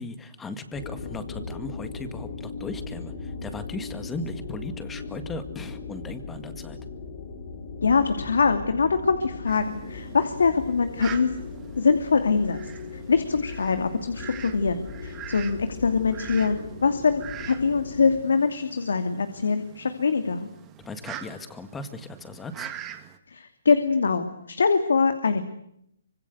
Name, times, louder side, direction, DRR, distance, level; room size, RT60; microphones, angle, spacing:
voice 1, 0.0-6.8 20.8-22.7, left 3 dB, 10° left, 10 dB, 1.8 m, -37 dB
sound 1, 0.7-18.2, left 4 dB, 40° left, 5.7 m, -38 dB
voice 2, 7.8-11.3 11.8-12.6 13.1-20.5 23.3-25.4, left 5 dB, 80° left, 8 dB, 2.7 m, -23 dB
Fowl, 9.5-23.2, right 10 dB, 15° right, 2.1 m, -44 dB
25.0 x 25.0 x 8.1 m, 0.75 s
hypercardioid pair, 165°, 0 cm